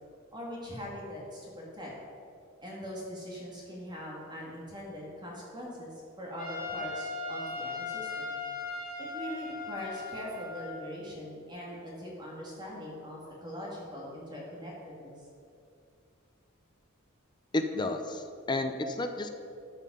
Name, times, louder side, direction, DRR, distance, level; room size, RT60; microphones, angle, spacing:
voice 1, 0.3-1.9 2.6-8.4 9.0-15.1, equal, 20° right, -3 dB, 2.3 m, -41 dB
Trumpet, 6.4-11.0, left 3 dB, 40° left, 2.9 m, -38 dB
voice 2, 17.5-19.3, left 2 dB, 20° left, 6 dB, 0.6 m, -31 dB
13.5 x 5.7 x 5.5 m, 2.4 s
head